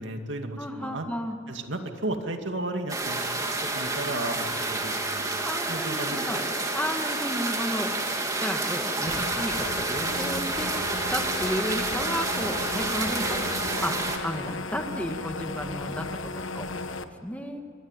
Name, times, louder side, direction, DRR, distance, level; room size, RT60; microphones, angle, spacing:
voice 1, 0.0-1.1 1.5-6.2, right 2 dB, 70° right, 5 dB, 2.4 m, -34 dB
voice 2, 0.6-1.4 5.4-6.4 6.7-7.9 8.4-10.7 11.1-13.4 13.8-14.0 14.2-16.8 17.2-17.6, left 1 dB, 10° left, 4 dB, 1.9 m, -33 dB
sound 1, 2.9-14.2, right 2 dB, 15° right, 2.9 m, -29 dB
sound 2, 9.1-17.0, left 2 dB, 80° left, 1.4 m, -35 dB
27.0 x 23.5 x 9.1 m, 2.4 s
head